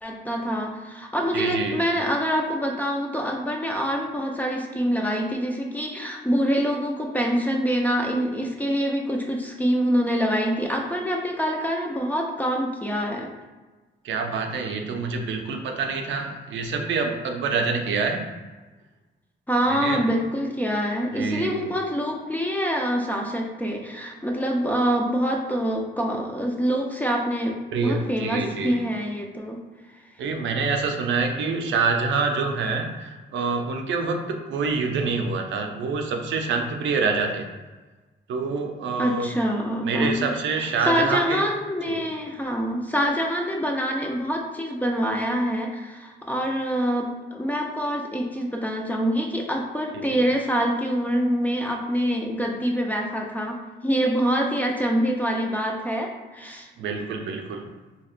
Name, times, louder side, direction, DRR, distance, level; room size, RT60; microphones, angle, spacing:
voice 1, 0.0-13.3 19.5-29.6 39.0-40.3 40.8-56.7, equal, 10° left, 1 dB, 0.4 m, -25 dB
voice 2, 1.3-1.8 14.0-18.2 19.7-20.0 21.1-21.7 27.7-28.8 30.2-37.5 38.3-39.3 39.8-41.4 41.9-42.1 50.1-50.2 56.8-57.7, right 4 dB, 75° right, 3 dB, 0.6 m, -26 dB
4.3 x 2.9 x 2.4 m, 1.2 s
cardioid pair, 135°, 19 cm